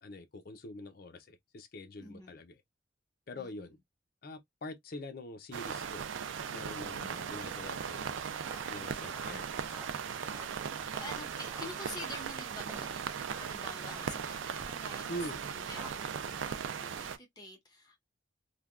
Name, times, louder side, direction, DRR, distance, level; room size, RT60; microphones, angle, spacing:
voice 1, 0.0-2.6 3.3-3.8 4.2-6.1 6.5-8.1 8.6-9.9 10.7-10.9 15.1-15.4, left 1 dB, 50° left, 0.5 m, -45 dB
voice 2, 2.0-2.4 3.3-3.5 7.0-7.4 9.3-9.6 11.0-18.0, left 2 dB, 20° left, 0.8 m, -48 dB
sound 1, 5.5-17.2, right 7 dB, 80° right, 0.4 m, -38 dB
sound 2, 7.2-15.9, right 2 dB, 10° right, 0.5 m, -52 dB
3.3 x 2.2 x 2.3 m
head